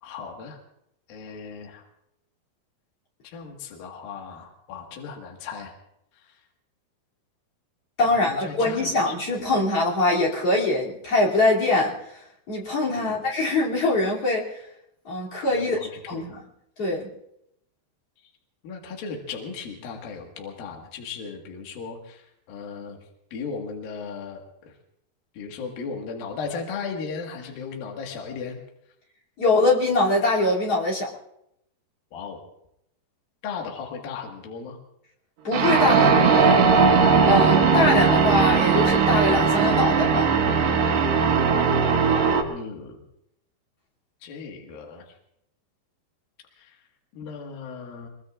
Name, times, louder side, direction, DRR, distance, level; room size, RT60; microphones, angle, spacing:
voice 1, 0.0-0.6 1.1-1.8 3.2-5.7 6.1-6.4 8.0-9.1 9.5-9.6 12.9-13.2 15.5-16.2 18.2-18.3 18.6-23.0 23.3-24.7 25.3-28.6 32.1-32.4 33.4-34.8 42.5-43.0 44.2-45.0 46.6-46.8 47.1-48.1, left 5 dB, 65° left, 1 dB, 3.4 m, -36 dB
voice 2, 8.0-14.6 15.0-15.8 16.1-16.3 16.8-17.1 29.4-31.1 35.4-36.6 37.3-40.3, left 2 dB, 40° left, -2 dB, 3.6 m, -23 dB
sound 1, 35.5-42.4, right 5 dB, 80° right, 3.8 m, -19 dB
24.5 x 22.5 x 2.5 m, 0.78 s
omnidirectional pair, 4.8 m